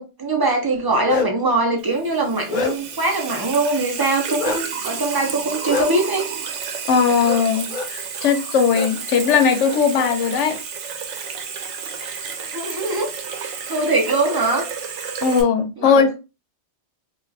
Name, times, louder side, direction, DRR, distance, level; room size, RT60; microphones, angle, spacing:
voice 1, 0.0-6.3 12.0-13.1 13.4-14.6 15.8-16.1, right 2 dB, 25° right, 0.6 m, -22 dB
Bark, 0.7-1.5 2.0-3.0 4.4-4.6 5.7-5.9 7.2-7.4 7.7-7.9 8.7-8.9 9.2-10.1, left 3 dB, 50° left, 0.7 m, -26 dB
Water tap faucet / Sink (filling or washing), 1.8-15.4, right 6 dB, 85° right, 0.9 m, -31 dB
voice 2, 6.9-10.6 15.2-16.1, left 6 dB, 85° left, 0.9 m, -18 dB
2.5 x 2.4 x 3.2 m
omnidirectional pair, 1.2 m